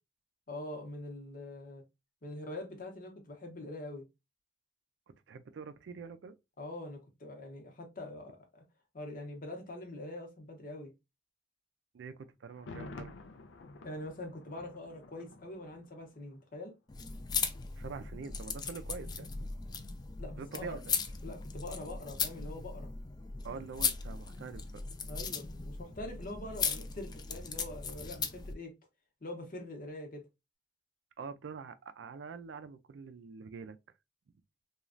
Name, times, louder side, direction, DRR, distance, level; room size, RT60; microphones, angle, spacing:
voice 1, 0.5-1.8 2.2-4.0 6.6-8.6 8.9-10.9 13.8-16.7 20.2-20.8 21.2-22.9 25.1-28.7 29.2-30.2, left 1 dB, 50° left, 0.9 m, -44 dB
voice 2, 5.1-6.3 11.9-13.1 17.8-19.5 20.3-20.9 23.4-24.8 31.2-33.8, right 5 dB, 70° right, 0.4 m, -45 dB
Thunder, 12.5-16.4 16.7-16.8, left 2 dB, 85° left, 0.4 m, -50 dB
sound 1, 16.9-28.5, left 5 dB, 20° left, 0.3 m, -38 dB
3.1 x 2.3 x 2.4 m
head